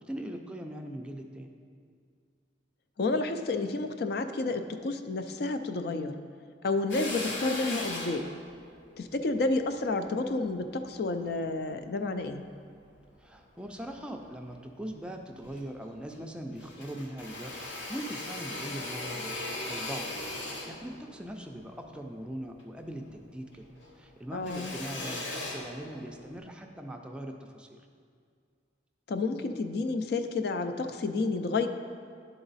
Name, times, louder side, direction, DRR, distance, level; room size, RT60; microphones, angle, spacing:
voice 1, 0.0-1.5 13.2-23.7 23.9-27.9, right 1 dB, 5° right, 3 dB, 0.4 m, -41 dB
voice 2, 3.0-6.1 6.6-8.3 9.0-12.4 24.3-24.7 29.1-31.7, left 3 dB, 60° left, 8 dB, 0.4 m, -30 dB
Drill, 6.9-11.4 12.0-13.2 13.6-14.6 14.9-15.0 15.3-16.3 16.5-23.2 23.5-26.4, left 2 dB, 90° left, 0.9 m, -39 dB
11.0 x 3.9 x 4.0 m, 2.2 s
head